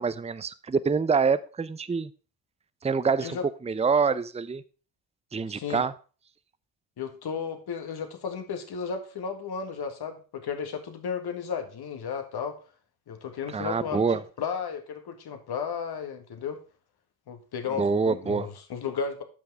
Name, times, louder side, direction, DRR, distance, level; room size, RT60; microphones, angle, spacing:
voice 1, 0.0-2.1 2.8-3.4 3.6-4.6 5.3-5.9 13.5-14.2 17.7-18.5, right 5 dB, 15° right, 15 dB, 0.6 m, -26 dB
voice 2, 5.5-5.9 7.0-12.6 13.1-14.0 14.4-16.6 17.3-19.2, left 6 dB, 60° left, 6 dB, 1.9 m, -34 dB
8.6 x 5.9 x 4.9 m, 0.36 s
hypercardioid pair, 50°, 43 cm